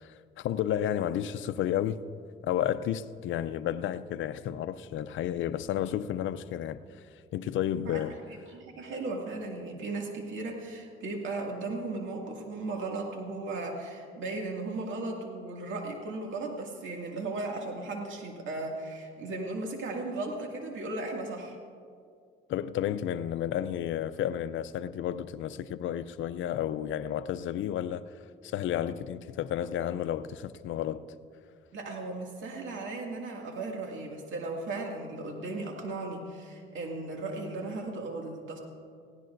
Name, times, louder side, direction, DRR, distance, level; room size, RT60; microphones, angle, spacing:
voice 1, 0.0-2.0 2.4-7.0 7.3-8.2 22.5-28.2 28.4-31.0, left 10 dB, 75° left, 0.5 m, -32 dB
voice 2, 7.9-21.6 31.7-38.6, right 2 dB, 75° right, 2.2 m, -36 dB
18.5 x 16.0 x 2.6 m
cardioid pair, 90°, 20 cm